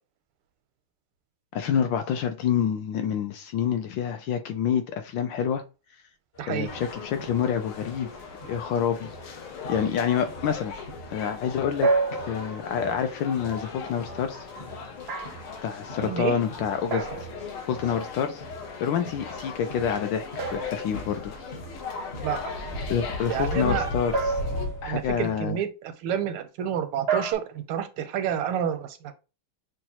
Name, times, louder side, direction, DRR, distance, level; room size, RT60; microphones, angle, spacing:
voice 1, 1.5-5.6 6.5-8.1 8.5-9.4 9.7-10.7 11.1-14.5 15.6-17.3 17.7-18.4 18.8-21.3 22.9-24.3 24.8-25.6, left 8 dB, 75° left, 7 dB, 1.1 m, -27 dB
sound 1, 6.3-25.4, left 1 dB, 45° left, 0.8 m, -41 dB
voice 2, 6.4-6.7 16.0-16.4 22.2-22.4 23.3-23.9 24.8-25.7 26.0-29.1, right 9 dB, 85° right, 10 dB, 1.5 m, -29 dB
sound 2, 6.6-24.7, left 5 dB, 90° left, 1.8 m, -39 dB
sound 3, 11.8-12.9 15.1-15.6 16.9-17.8 20.4-21.5 24.1-25.0 27.1-27.3, right 3 dB, 60° right, 0.6 m, -29 dB
6.1 x 2.3 x 2.8 m, 0.30 s
omnidirectional pair, 2.3 m